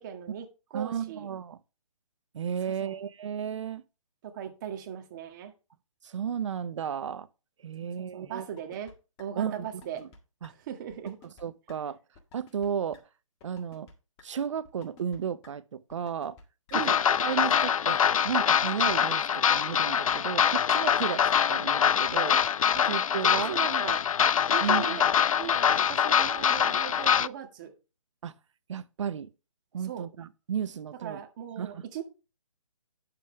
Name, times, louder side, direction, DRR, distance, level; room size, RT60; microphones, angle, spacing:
voice 1, 0.0-1.3 2.7-3.0 4.2-5.5 7.8-8.9 9.2-10.0 10.5-11.2 16.7-17.0 22.7-22.9 23.2-24.0 24.5-25.1 25.4-27.7 29.8-30.0 31.0-32.0, right 9 dB, 35° right, 1.8 m, -38 dB
voice 2, 0.7-1.6 2.3-3.8 6.0-7.3 7.6-8.5 9.4-9.7 10.0-10.1 10.4-10.5 11.4-12.0 12.3-13.0 13.4-13.9 14.2-16.4 16.7-16.8 17.2-22.4 22.9-23.6 24.6-25.0 28.2-28.3 28.7-29.3 29.7-31.2 31.6-31.8, right 8 dB, 55° right, 0.7 m, -33 dB
sound 1, 8.6-8.9 9.2-9.3 9.7-10.2 10.4-10.5 10.9-11.4 11.7-11.8 12.1-12.7 12.9-13.0 13.4-13.9 14.2-14.3 14.6-15.2 15.4-15.5 15.9-16.4 16.7-16.8 17.2-18.0 18.4-19.2 19.7-20.2 20.4-20.5 20.9-21.4 21.7-21.8 22.1-22.7 22.9-23.0 23.4-23.9 24.2-24.3 24.6-25.2 25.4-25.5 25.9-26.4 26.7-26.8 27.1-27.2, left 4 dB, 20° left, 1.7 m, -54 dB
sound 2, 16.7-27.3, left 8 dB, 75° left, 0.4 m, -24 dB
9.2 x 7.7 x 3.4 m
hypercardioid pair, 150°, 18 cm